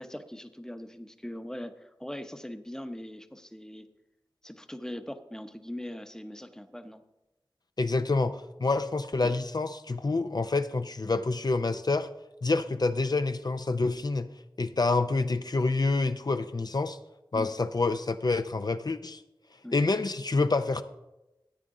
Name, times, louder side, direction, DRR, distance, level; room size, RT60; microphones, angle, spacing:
voice 1, 0.0-3.9 4.4-7.0 9.2-9.4 17.3-17.5 19.6-19.8, left 1 dB, 5° left, 9 dB, 0.8 m, -41 dB
voice 2, 7.8-8.3 8.6-12.1 12.4-14.3 14.6-17.0 17.3-19.2 19.7-20.8, left 3 dB, 50° left, 10 dB, 0.5 m, -27 dB
13.5 x 9.1 x 3.7 m, 0.97 s
wide cardioid pair, 55°, 9 cm